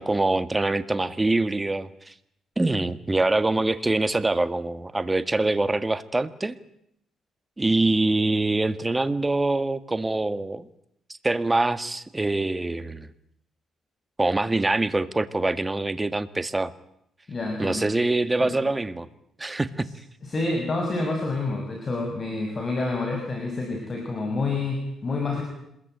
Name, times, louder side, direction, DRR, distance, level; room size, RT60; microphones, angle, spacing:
voice 1, 0.0-2.1 2.6-6.5 7.6-10.7 11.1-13.1 14.2-16.7 17.6-19.1 19.4-19.9, right 2 dB, 15° right, 12 dB, 1.8 m, -24 dB
voice 2, 17.3-17.8 18.4-18.5 20.2-25.4, left 3 dB, 40° left, 2 dB, 7.2 m, -28 dB
27.0 x 21.5 x 9.4 m, 0.75 s
cardioid pair, 90°, 0 cm